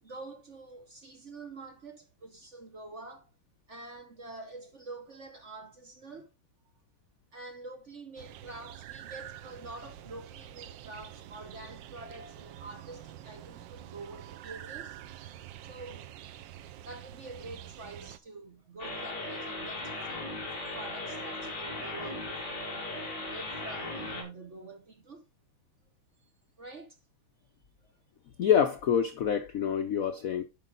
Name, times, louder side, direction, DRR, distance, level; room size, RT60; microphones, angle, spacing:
voice 1, 0.0-3.3 3.7-6.3 7.3-15.0 15.6-16.1 16.8-22.9 23.3-25.2 26.6-27.0, right 3 dB, 45° right, 1.0 m, -46 dB
sound 1, 8.2-18.2, right 11 dB, 70° right, 1.2 m, -47 dB
sound 2, 18.8-24.2, left 2 dB, 50° left, 3.3 m, -37 dB
voice 2, 28.4-30.4, left 8 dB, 80° left, 0.7 m, -26 dB
11.0 x 5.1 x 3.9 m
omnidirectional pair, 2.4 m